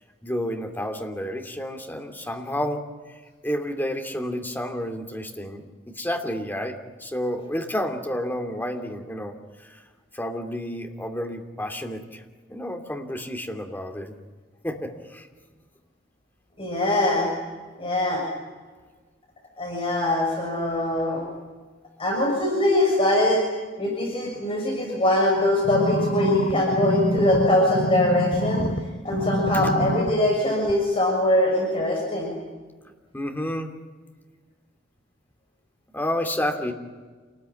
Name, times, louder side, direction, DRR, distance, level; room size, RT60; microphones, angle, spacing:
voice 1, 0.2-2.8 3.4-9.3 9.6-9.8 10.1-12.2 12.5-14.1 14.6-15.3 29.5-29.7 33.1-33.7 35.9-36.7, equal, 10° left, 4 dB, 2.9 m, -30 dB
voice 2, 16.6-17.3 17.8-18.2 19.6-21.2 22.0-23.4 23.8-28.6 29.0-32.3, left 1 dB, 30° left, -1 dB, 6.5 m, -22 dB
sound 1, 25.6-28.8 29.1-30.1 30.7-30.8, equal, 65° left, 2.2 m, -26 dB
28.5 x 20.0 x 9.9 m, 1.4 s
head